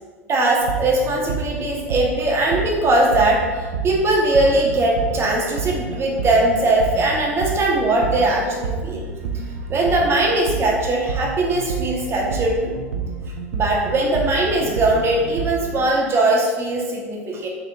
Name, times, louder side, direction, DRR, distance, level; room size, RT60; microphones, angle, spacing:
voice 1, 0.3-9.1 9.7-12.7 13.5-17.5, right 2 dB, 30° right, -2 dB, 1.0 m, -20 dB
sound 1, 0.6-15.8, right 4 dB, 80° right, 0.4 m, -29 dB
4.4 x 2.4 x 2.7 m, 1.4 s
hypercardioid pair, 85°, 8 cm